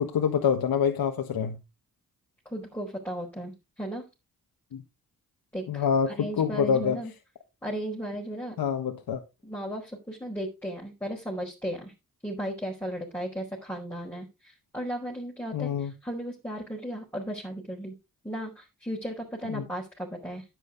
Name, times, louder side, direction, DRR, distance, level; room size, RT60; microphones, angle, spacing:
voice 1, 0.0-1.6 4.7-4.8 5.7-7.0 8.6-9.2 15.5-15.9 19.5-19.6, left 7 dB, 85° left, 1.4 m, -26 dB
voice 2, 2.4-4.1 5.5-7.1 7.6-8.6 9.4-11.9 12.2-17.9 18.2-20.4, equal, 5° left, 4.7 m, -35 dB
10.0 x 9.2 x 3.9 m
cardioid pair, 60°, 35 cm